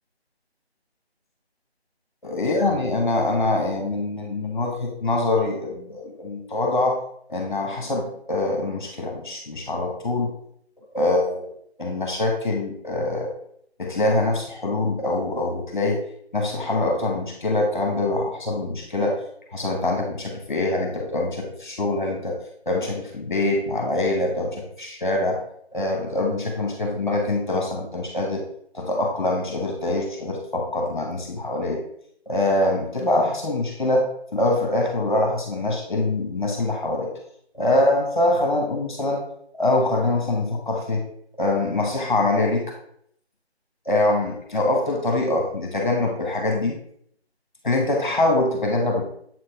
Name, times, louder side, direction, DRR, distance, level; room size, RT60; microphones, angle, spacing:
voice 1, 2.2-7.0 7.3-10.3 10.9-11.5 11.8-13.3 13.8-16.0 16.3-19.1 19.5-22.4 22.6-25.4 25.7-28.4 28.7-31.8 32.3-37.1 37.5-39.2 39.5-41.0 41.4-42.7 43.8-46.8 47.6-49.1, left 2 dB, 45° left, 1 dB, 1.5 m, -24 dB
7.7 x 4.1 x 3.2 m, 0.66 s
figure-of-eight pair, 170°, 33 cm